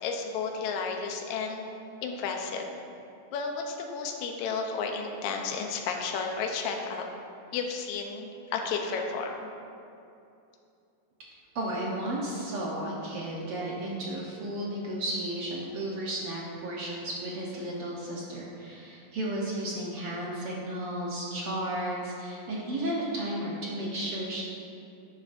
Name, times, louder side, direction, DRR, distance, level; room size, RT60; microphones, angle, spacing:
voice 1, 0.0-1.7 2.0-2.7 3.3-7.1 7.5-9.5, left 5 dB, 75° left, 2 dB, 1.9 m, -32 dB
voice 2, 11.5-24.4, right 1 dB, 70° right, -4 dB, 1.3 m, -33 dB
11.0 x 9.5 x 2.6 m, 2.7 s
omnidirectional pair, 4.0 m